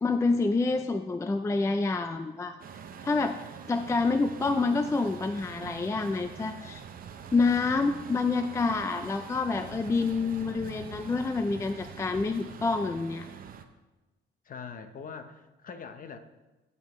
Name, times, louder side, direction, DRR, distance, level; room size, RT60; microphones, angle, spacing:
voice 1, 0.0-2.6 3.0-3.4 3.7-6.8 7.3-13.3, left 3 dB, 15° left, 8 dB, 0.3 m, -27 dB
Truck, 2.6-13.6, right 7 dB, 45° right, 0.7 m, -44 dB
voice 2, 14.4-16.2, left 6 dB, 45° left, 9 dB, 0.8 m, -42 dB
15.5 x 5.4 x 3.1 m, 1.1 s
cardioid pair, 115°, 20 cm